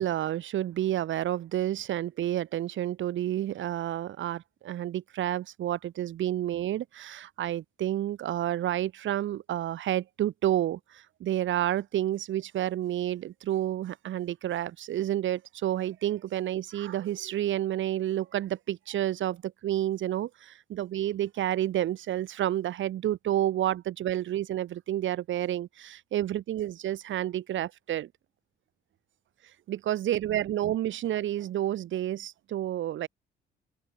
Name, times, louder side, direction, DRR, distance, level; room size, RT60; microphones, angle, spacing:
voice 1, 0.0-28.1 29.7-33.1, right 12 dB, 75° right, 3.1 m, -30 dB
open air
cardioid pair, 90°, 20 cm